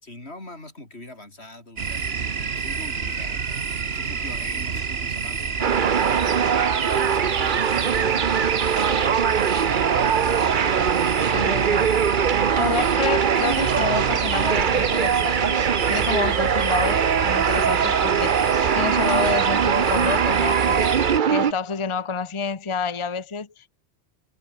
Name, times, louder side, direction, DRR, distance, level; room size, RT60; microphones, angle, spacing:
voice 1, 0.0-3.6 3.9-6.5 6.9-9.1, left 2 dB, 80° left, 5.9 m, -43 dB
sound 1, 1.8-21.2, right 5 dB, 70° right, 1.6 m, -28 dB
sound 2, 5.6-21.5, right 7 dB, 50° right, 0.9 m, -22 dB
voice 2, 11.2-11.9 12.6-15.6 15.9-23.7, left 5 dB, 30° left, 1.0 m, -29 dB
omnidirectional pair, 1.1 m